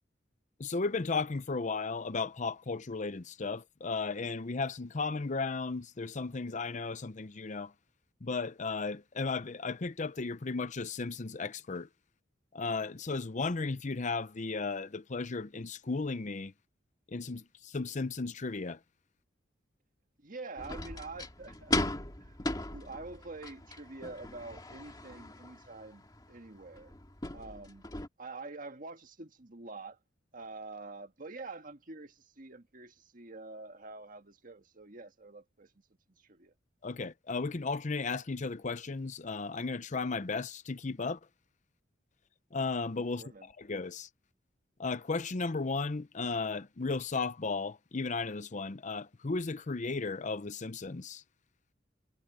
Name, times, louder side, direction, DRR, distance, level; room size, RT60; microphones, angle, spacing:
voice 1, 0.6-7.7 8.2-11.9 12.5-16.5 17.1-18.8 36.8-41.2 42.5-44.1 44.8-51.2, left 4 dB, 45° left, 0.7 m, -35 dB
voice 2, 20.2-21.8 22.2-26.9 27.3-27.8 28.2-30.0 30.3-35.7 36.1-36.5 43.2-43.5, right 3 dB, 50° right, 1.7 m, -46 dB
sound 1, 20.6-28.1, left 2 dB, 20° left, 2.0 m, -38 dB
head